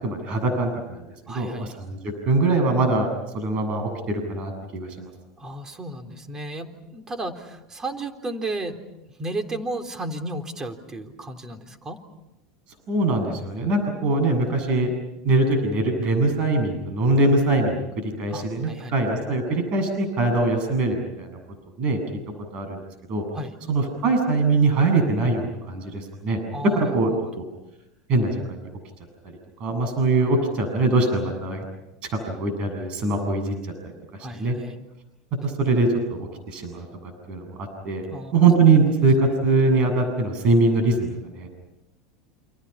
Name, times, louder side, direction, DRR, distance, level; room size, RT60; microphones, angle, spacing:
voice 1, 0.0-2.0 2.3-3.1 3.3-5.1 12.9-14.9 15.2-21.4 21.8-22.0 22.5-22.8 23.1-23.2 23.7-26.4 26.7-27.4 28.1-28.7 29.2-29.3 29.6-31.7 32.1-33.5 33.8-34.6 35.4-36.9 37.3-38.0 38.3-41.5, right 3 dB, 50° right, 6 dB, 7.8 m, -22 dB
voice 2, 1.3-1.7 5.4-8.8 9.2-12.0 18.3-18.9 23.3-23.6 26.5-27.3 34.2-34.8 38.1-38.3, right 2 dB, 20° right, 7 dB, 3.8 m, -33 dB
29.5 x 28.0 x 5.9 m, 0.93 s
hypercardioid pair, 90°, 2 cm